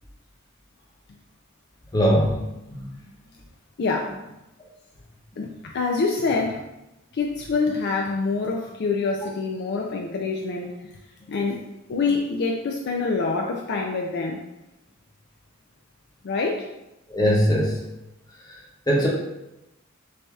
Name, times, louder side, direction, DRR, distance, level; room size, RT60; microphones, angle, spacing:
voice 1, 1.9-2.4 2.7-2.8 17.1-17.8 18.9-19.1, equal, 20° left, -3 dB, 0.8 m, -20 dB
voice 2, 3.8-4.2 5.4-6.6 7.1-10.7 11.3-11.6 11.9-14.4 16.2-16.7, left 4 dB, 50° left, 0 dB, 0.4 m, -26 dB
6.4 x 2.7 x 2.3 m, 0.93 s
head